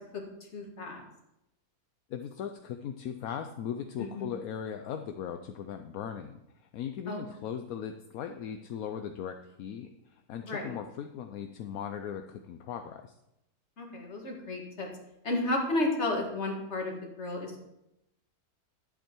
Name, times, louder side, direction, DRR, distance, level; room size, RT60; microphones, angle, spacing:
voice 1, 0.5-1.0 4.0-4.3 7.1-7.2 10.4-10.8 13.8-14.9 15.2-17.6, left 2 dB, 45° left, 0 dB, 2.1 m, -32 dB
voice 2, 2.1-13.1, left 8 dB, 75° left, 7 dB, 1.1 m, -38 dB
11.0 x 7.8 x 4.5 m, 0.87 s
omnidirectional pair, 1.6 m